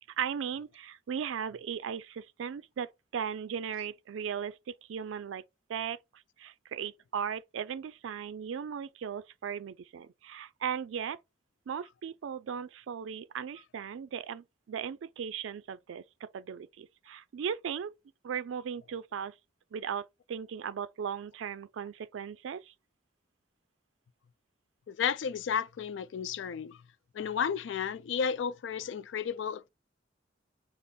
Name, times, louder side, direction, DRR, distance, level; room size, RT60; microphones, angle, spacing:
voice 1, 0.2-5.4 5.7-11.2 11.7-16.0 16.3-17.9 18.2-19.3 19.7-22.7, right 7 dB, 90° right, 0.4 m, -37 dB
voice 2, 24.9-26.8 27.1-29.7, left 7 dB, 70° left, 0.3 m, -32 dB
5.2 x 2.0 x 4.1 m
head